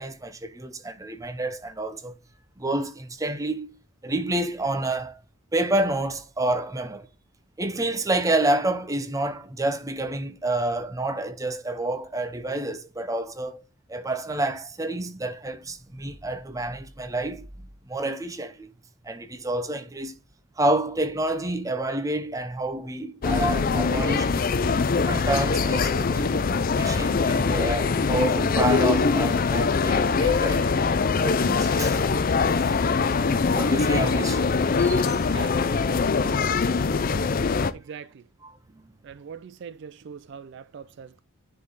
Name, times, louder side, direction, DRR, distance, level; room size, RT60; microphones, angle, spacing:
voice 1, 0.0-2.2 2.6-3.8 4.0-5.2 5.5-7.1 7.6-13.6 13.9-17.4 17.9-18.7 19.0-20.1 20.6-24.6 25.0-26.3 26.7-30.8 31.2-32.0 32.6-32.7 33.1-34.4 34.8-35.2 38.4-38.8, right 2 dB, 15° right, 0.6 m, -29 dB
sound 1, 23.2-37.7, left 4 dB, 40° left, 0.4 m, -23 dB
voice 2, 35.3-36.0 37.7-38.2 39.0-41.2, right 7 dB, 55° right, 0.3 m, -42 dB
10.0 x 3.9 x 3.9 m
head